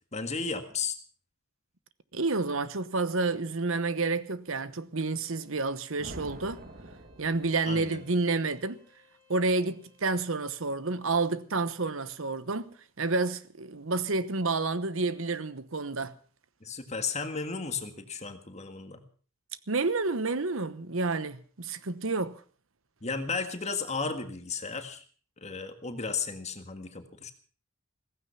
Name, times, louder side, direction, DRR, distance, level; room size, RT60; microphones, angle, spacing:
voice 1, 0.1-0.9 7.7-8.0 16.6-19.0 23.0-25.0 25.4-27.3, left 4 dB, 30° left, 1.7 m, -34 dB
voice 2, 2.1-6.6 7.2-8.8 9.3-12.6 13.0-16.1 19.7-22.3, right 3 dB, 65° right, 1.1 m, -29 dB
Bowed string instrument, 5.3-10.2, left 2 dB, 15° right, 5.4 m, -64 dB
sound 1, 6.0-8.0, right 1 dB, 45° right, 2.2 m, -45 dB
16.0 x 15.5 x 5.7 m
head